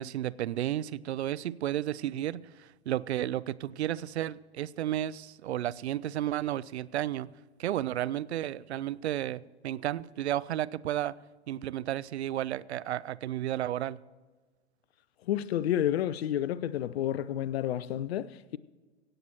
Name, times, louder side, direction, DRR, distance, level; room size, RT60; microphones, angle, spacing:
voice 1, 0.0-7.3 7.6-11.1 11.5-14.0, right 12 dB, 75° right, 0.5 m, -32 dB
voice 2, 15.3-18.6, left 11 dB, 65° left, 0.6 m, -30 dB
17.0 x 7.9 x 5.8 m
hypercardioid pair, 110°, 33 cm